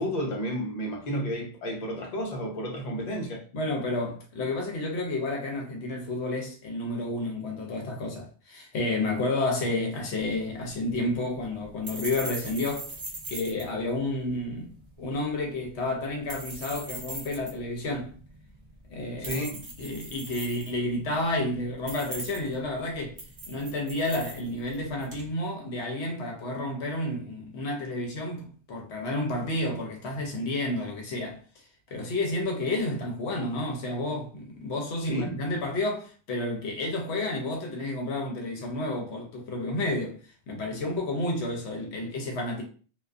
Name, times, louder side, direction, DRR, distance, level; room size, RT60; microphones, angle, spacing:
voice 1, 0.0-3.4 19.2-19.6 35.0-35.6, equal, 45° left, 0.6 m, -32 dB
voice 2, 3.5-12.9 13.3-14.7 15.0-18.1 18.9-19.4 19.8-23.2 23.5-31.4 31.9-42.6, left 2 dB, 70° left, 0.9 m, -31 dB
sound 1, 10.2-25.3, right 2 dB, 40° right, 0.4 m, -42 dB
2.4 x 2.3 x 2.3 m
omnidirectional pair, 1.2 m